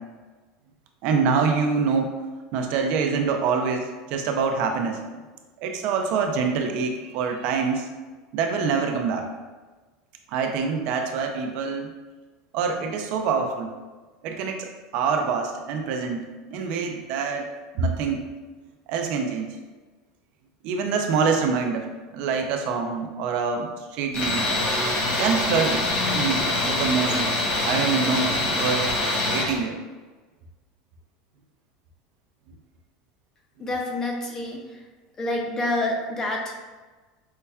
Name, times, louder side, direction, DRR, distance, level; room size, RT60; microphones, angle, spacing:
voice 1, 1.0-2.2 2.5-5.0 5.6-7.9 8.3-9.3 10.3-11.9 12.5-13.7 14.2-16.2 16.5-17.5 17.7-18.2 18.9-19.5 20.6-21.9 22.1-24.5 25.2-25.8 26.1-27.3 27.7-28.9 29.2-29.8, right 5 dB, 50° right, 4 dB, 0.4 m, -25 dB
Tools, 24.1-29.5, left 2 dB, 50° left, 0.9 m, -24 dB
voice 2, 33.6-34.9 35.2-36.5, left 2 dB, 20° left, 1 dB, 0.5 m, -28 dB
5.3 x 2.2 x 2.2 m, 1.3 s
supercardioid pair, 165°, 3 cm